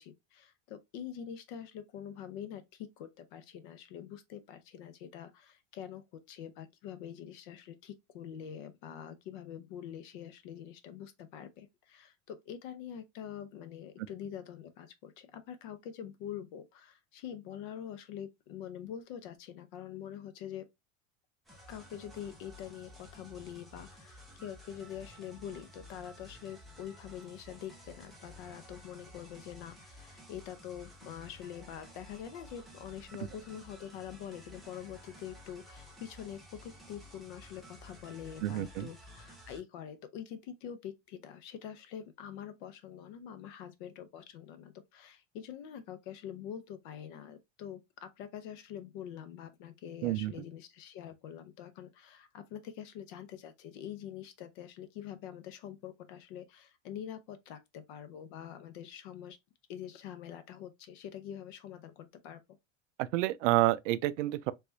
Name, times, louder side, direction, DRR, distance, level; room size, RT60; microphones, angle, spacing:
voice 1, 0.0-20.7 21.7-59.4 59.7-62.4, left 9 dB, 45° left, 0.6 m, -45 dB
sound 1, 21.4-39.6, equal, ahead, 0.4 m, -53 dB
voice 2, 38.4-38.9 50.0-50.3 63.0-64.5, right 16 dB, 85° right, 0.5 m, -29 dB
3.4 x 3.3 x 2.6 m
supercardioid pair, 170°, 36 cm